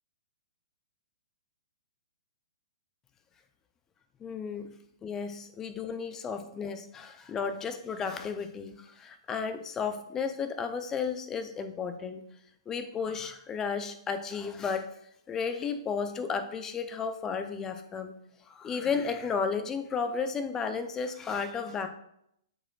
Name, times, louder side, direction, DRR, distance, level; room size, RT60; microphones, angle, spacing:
voice 1, 4.2-4.7 5.0-12.2 12.7-14.9 15.3-18.1 18.5-21.9, left 5 dB, 15° left, 9 dB, 0.5 m, -33 dB
9.8 x 4.4 x 2.4 m, 0.76 s
figure-of-eight pair, 115°, 3 cm